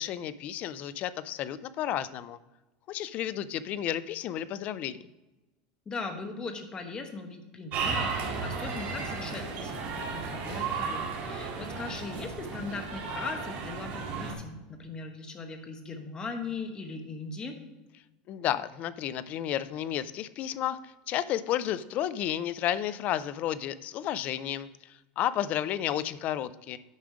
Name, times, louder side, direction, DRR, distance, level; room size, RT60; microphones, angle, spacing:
voice 1, 0.0-2.4 2.9-5.0 18.3-26.8, left 11 dB, 40° left, 15 dB, 0.4 m, -32 dB
voice 2, 5.9-9.7 10.1-17.6, left 4 dB, 20° left, 6 dB, 1.1 m, -39 dB
sound 1, 7.7-14.3, right 5 dB, 45° right, 2.0 m, -34 dB
9.4 x 5.0 x 4.9 m, 1.1 s
supercardioid pair, 155°, 4 cm